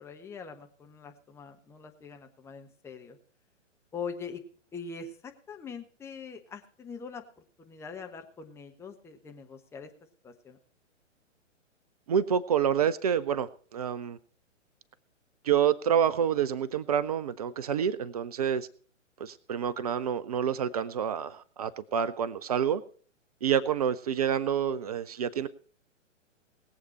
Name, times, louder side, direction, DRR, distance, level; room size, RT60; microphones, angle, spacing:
voice 1, 0.0-3.2 3.9-4.4 4.7-7.2 7.6-9.9 10.2-10.6, left 5 dB, 5° left, 4 dB, 1.1 m, -42 dB
voice 2, 12.1-14.2 15.4-18.7 19.2-22.8 23.4-25.5, right 8 dB, 30° right, 16 dB, 0.6 m, -28 dB
20.0 x 8.0 x 4.4 m, 0.43 s
figure-of-eight pair, 120°, 38 cm